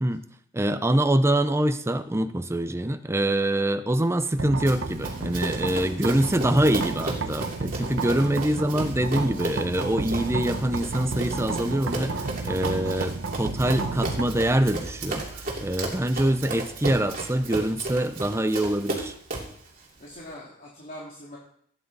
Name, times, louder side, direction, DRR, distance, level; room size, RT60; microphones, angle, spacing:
voice 1, 0.5-19.2, right 1 dB, 15° right, 10 dB, 0.6 m, -25 dB
sound 1, 4.4-18.2, right 3 dB, 70° right, 1.0 m, -33 dB
Run, 4.7-19.6, right 2 dB, 45° right, 2.9 m, -35 dB
voice 2, 5.8-6.1 8.1-8.3 20.0-21.4, equal, 45° left, -5 dB, 2.7 m, -43 dB
17.0 x 9.6 x 4.1 m, 0.64 s
head